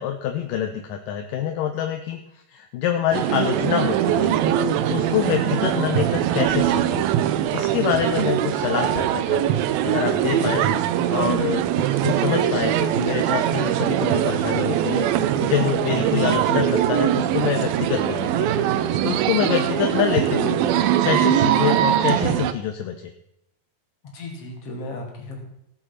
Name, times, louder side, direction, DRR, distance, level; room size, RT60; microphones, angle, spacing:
voice 1, 0.0-2.2 2.5-4.6 4.9-7.1 7.5-9.4 9.8-10.7 11.1-20.6 21.0-23.1, left 9 dB, 75° left, 5 dB, 2.3 m, -26 dB
sound 1, 3.1-22.5, right 11 dB, 80° right, 2.4 m, -22 dB
voice 2, 24.1-25.5, left 2 dB, 40° left, 1 dB, 3.4 m, -34 dB
17.5 x 8.2 x 5.8 m, 0.79 s
omnidirectional pair, 4.4 m